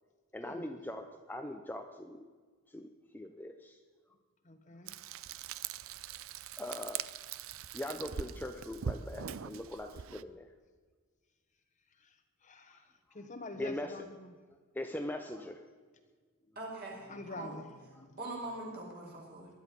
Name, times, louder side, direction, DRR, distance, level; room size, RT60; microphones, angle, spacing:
voice 1, 0.3-2.3 2.7-3.8 6.6-7.0 7.7-10.5 13.6-13.9 14.7-15.6, left 1 dB, 10° left, 5 dB, 0.7 m, -41 dB
voice 2, 4.4-4.9 11.9-14.4 16.5-16.6 17.1-18.2 18.7-18.8, left 2 dB, 35° left, 6 dB, 1.2 m, -47 dB
Frying (food), 4.9-10.2, right 7 dB, 65° right, 0.5 m, -42 dB
voice 3, 16.6-17.6 18.2-19.5, right 2 dB, 45° right, -3 dB, 5.9 m, -42 dB
20.0 x 12.0 x 5.5 m, 1.5 s
head